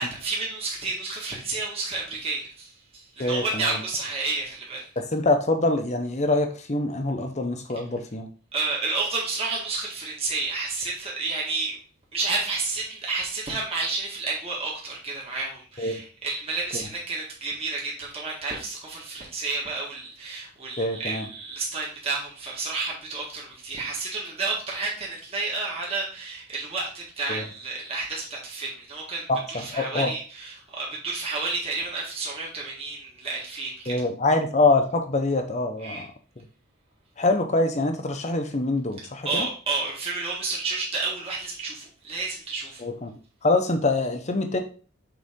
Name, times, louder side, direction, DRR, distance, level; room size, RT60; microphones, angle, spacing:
voice 1, 0.0-4.9 8.5-11.8 12.1-33.9 35.8-36.0 39.2-42.8, right 3 dB, 25° right, -3 dB, 1.6 m, -31 dB
voice 2, 3.2-3.8 5.0-8.3 15.8-16.0 16.7-16.8 20.8-21.3 27.3-27.4 29.3-30.1 33.9-36.1 36.4-36.5 37.2-39.5 42.8-44.6, left 2 dB, 30° left, 6 dB, 0.8 m, -25 dB
6.5 x 3.9 x 3.7 m, 0.40 s
head